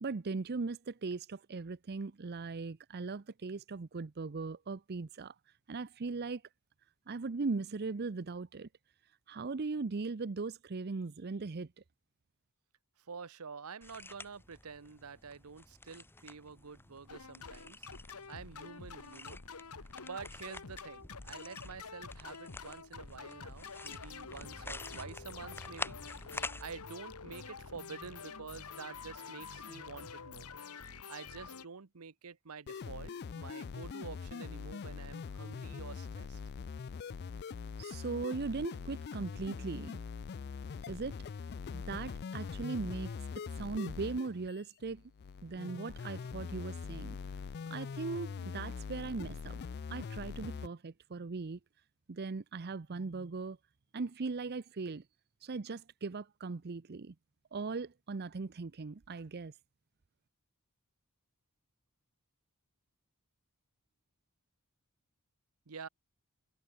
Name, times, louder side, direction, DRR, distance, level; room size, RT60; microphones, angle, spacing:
voice 1, 0.0-5.4 5.7-6.4 7.1-8.7 9.3-11.7 37.8-40.0 40.9-41.2 41.7-43.1 43.6-45.0 45.4-47.2 47.7-49.6 49.9-51.6 52.1-53.6 53.9-55.0 55.4-57.1 57.5-59.5, right 4 dB, 45° right, 0.6 m, -39 dB
voice 2, 13.1-17.9 18.3-19.4 19.8-26.0 26.3-30.5 31.1-36.4 65.7-65.9, right 5 dB, 75° right, 0.9 m, -48 dB
sound 1, 13.8-26.6, left 2 dB, 10° left, 0.9 m, -48 dB
sound 2, 17.1-31.7, left 5 dB, 80° left, 1.5 m, -48 dB
sound 3, 32.7-50.7, left 5 dB, 45° left, 0.4 m, -43 dB
head